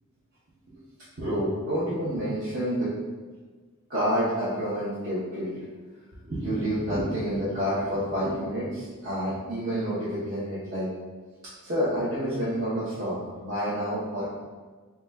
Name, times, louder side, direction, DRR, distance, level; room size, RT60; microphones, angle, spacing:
voice 1, 1.2-2.9 3.9-5.6 6.2-10.9 11.6-14.3, equal, 50° right, -11 dB, 0.9 m, -28 dB
6.9 x 2.3 x 2.3 m, 1.4 s
head